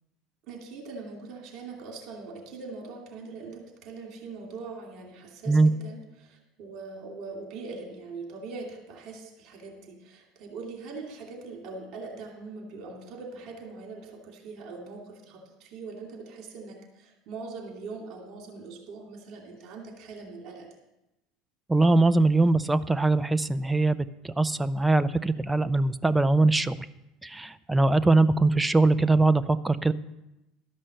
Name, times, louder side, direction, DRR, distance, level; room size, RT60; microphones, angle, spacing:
voice 1, 0.5-20.8, right 4 dB, 55° right, 2 dB, 2.6 m, -42 dB
voice 2, 21.7-26.8 27.2-29.9, right 2 dB, 10° right, 13 dB, 0.4 m, -22 dB
12.5 x 5.5 x 7.7 m, 0.93 s
supercardioid pair, 120°, 0 cm